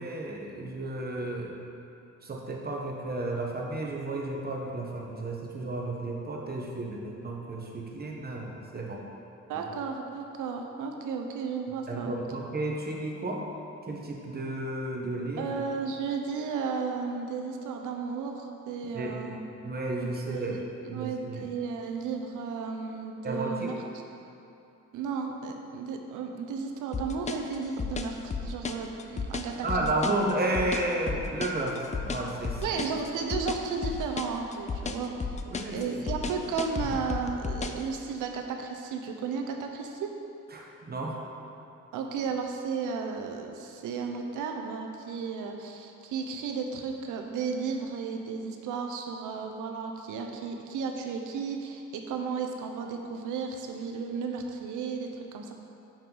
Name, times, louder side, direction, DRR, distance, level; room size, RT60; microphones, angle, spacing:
voice 1, 0.0-1.6 2.2-9.0 11.9-13.4 13.9-15.5 18.9-19.4 19.6-20.6 20.9-21.5 23.2-23.7 29.6-32.8 35.5-36.0 40.5-41.2, right 2 dB, 30° right, -1 dB, 1.2 m, -32 dB
voice 2, 9.5-12.2 15.4-19.4 20.0-23.7 24.9-29.5 30.0-30.1 32.6-35.1 35.7-40.1 41.9-55.5, right 5 dB, 85° right, 3 dB, 0.8 m, -34 dB
sound 1, 26.9-37.8, left 5 dB, 25° left, 0.4 m, -33 dB
5.8 x 5.6 x 5.4 m, 2.8 s
cardioid pair, 90°, 30 cm